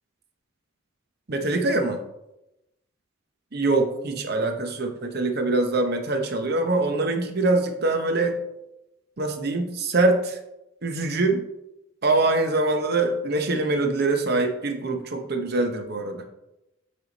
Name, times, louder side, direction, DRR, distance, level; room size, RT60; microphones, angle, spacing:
voice 1, 1.3-2.0 3.5-8.4 9.2-10.4 10.8-11.4 12.0-16.2, right 2 dB, 50° right, 5 dB, 0.8 m, -24 dB
7.6 x 3.5 x 3.9 m, 0.90 s
head